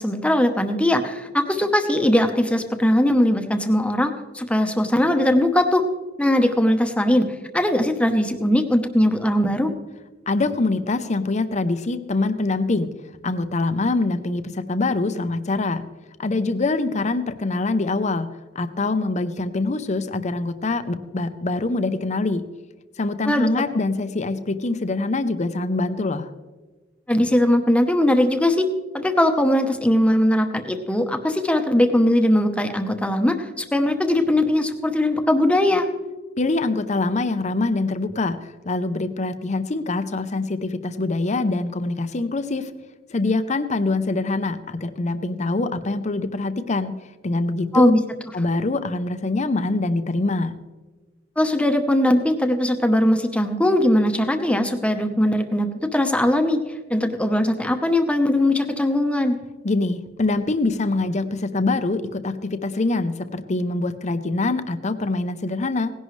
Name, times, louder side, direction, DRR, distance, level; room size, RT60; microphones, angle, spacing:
voice 1, 0.0-5.8 6.2-7.2 7.5-9.7 23.3-23.5 27.1-28.7 28.9-35.9 47.7-48.0 51.4-56.6 56.9-59.4, left 1 dB, 5° left, 6 dB, 1.0 m, -20 dB
voice 2, 10.3-12.9 13.2-15.8 16.2-18.3 18.5-22.4 23.0-26.3 36.4-42.7 43.1-46.9 47.2-47.9 48.3-50.5 59.6-65.9, left 2 dB, 40° left, 11 dB, 0.7 m, -24 dB
18.0 x 11.0 x 3.2 m, 1.2 s
head